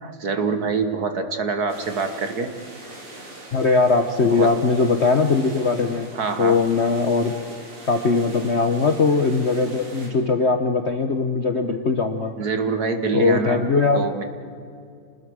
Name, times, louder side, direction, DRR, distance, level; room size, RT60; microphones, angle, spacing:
voice 1, 0.0-2.6 2.9-3.0 4.3-4.5 6.1-6.7 9.2-9.3 12.4-13.7 13.9-14.2, right 4 dB, 50° right, 8 dB, 1.7 m, -25 dB
sound 1, 1.7-10.1, right 1 dB, 80° right, 4.6 m, -42 dB
voice 2, 3.5-6.1 6.4-7.4 7.9-12.3 13.1-14.0, left 4 dB, 45° left, 6 dB, 0.9 m, -20 dB
28.5 x 20.0 x 6.3 m, 2.4 s
omnidirectional pair, 2.4 m